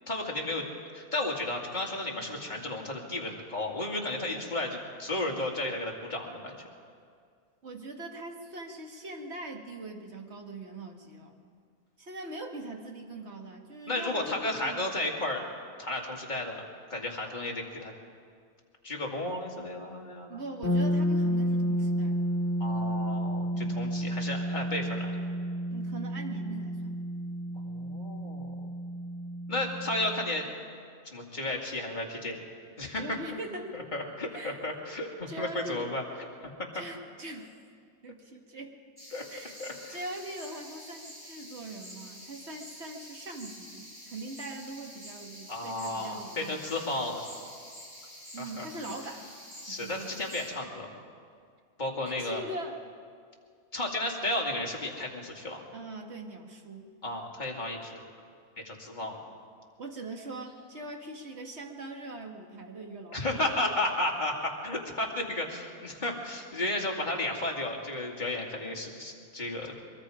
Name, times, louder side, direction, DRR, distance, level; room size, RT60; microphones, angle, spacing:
voice 1, 0.1-0.6 0.9-6.6 13.9-15.4 15.8-17.9 18.8-20.4 22.6-25.1 27.6-28.5 29.5-30.5 31.1-32.4 32.8-33.0 33.7-36.0 39.1-39.2 39.6-40.0 45.5-47.3 48.4-48.7 49.6-50.9 51.8-52.4 53.7-55.6 57.0-58.1 58.6-59.2 63.1-69.7, left 2 dB, 30° left, -1 dB, 2.6 m, -33 dB
voice 2, 7.6-11.3 12.0-14.9 20.3-22.3 23.5-23.8 25.7-27.0 33.0-33.8 34.3-34.6 34.9-35.0 35.3-35.8 36.7-37.5 38.0-38.8 39.3-39.6 39.9-46.7 48.3-49.3 49.7-50.2 52.1-52.8 55.7-56.9 59.8-63.7, right 2 dB, 45° right, 2 dB, 2.0 m, -41 dB
sound 1, 20.6-30.4, equal, 45° left, 2.7 m, -31 dB
sound 2, 39.0-50.5, equal, 15° right, 5.2 m, -48 dB
23.0 x 23.0 x 5.0 m, 2.2 s
omnidirectional pair, 1.5 m